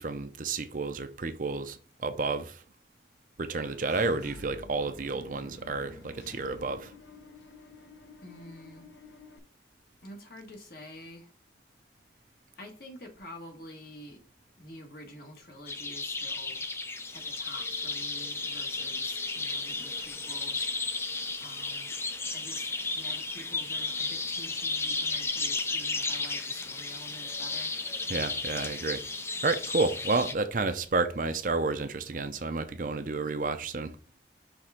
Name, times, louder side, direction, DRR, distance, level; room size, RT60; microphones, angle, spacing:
voice 1, 0.0-2.6 3.4-6.9 28.1-29.0 29.4-33.9, right 3 dB, 45° right, 0.6 m, -31 dB
Engine / Mechanisms, 3.5-9.4, left 3 dB, 80° left, 1.0 m, -50 dB
voice 2, 8.2-8.9 10.0-11.3 12.6-14.2 14.6-16.6 17.1-20.7 21.4-21.9 22.3-27.7, left 1 dB, 55° left, 1.7 m, -48 dB
sound 1, 15.7-30.3, left 3 dB, 15° left, 0.4 m, -34 dB
5.9 x 3.5 x 5.0 m
head